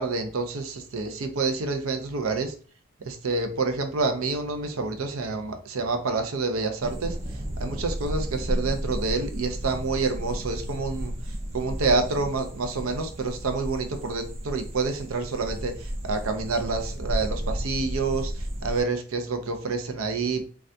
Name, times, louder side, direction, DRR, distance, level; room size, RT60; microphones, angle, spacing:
voice 1, 0.0-2.5 3.1-7.2 7.6-11.1 11.5-20.5, right 3 dB, 80° right, 6 dB, 0.5 m, -28 dB
sound 1, 6.8-18.8, equal, 25° right, 0.4 m, -33 dB
3.3 x 2.3 x 2.6 m, 0.39 s
head